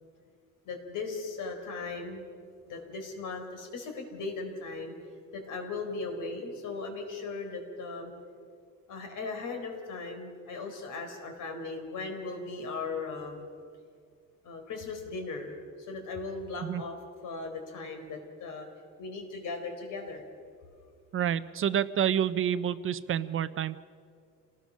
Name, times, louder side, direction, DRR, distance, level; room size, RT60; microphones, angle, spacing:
voice 1, 0.6-2.3 2.7-4.9 5.3-8.1 8.9-13.5 14.4-15.5 15.9-17.0 17.2-18.7 19.0-20.3, left 3 dB, 70° left, 4 dB, 4.1 m, -38 dB
voice 2, 21.1-23.8, right 9 dB, 40° right, 14 dB, 0.5 m, -28 dB
27.0 x 19.0 x 6.3 m, 2.2 s
cardioid pair, 165°, 32 cm